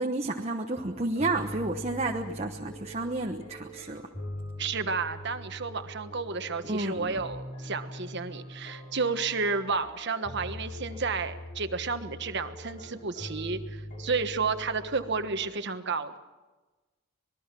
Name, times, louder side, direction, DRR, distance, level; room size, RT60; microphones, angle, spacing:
voice 1, 0.0-4.0 6.6-7.2, right 2 dB, 30° right, 3 dB, 1.1 m, -31 dB
sound 1, 0.7-15.5, equal, 40° left, 6.5 m, -42 dB
voice 2, 4.6-16.2, right 4 dB, 55° right, 8 dB, 1.3 m, -31 dB
26.5 x 20.5 x 6.1 m, 1.2 s
head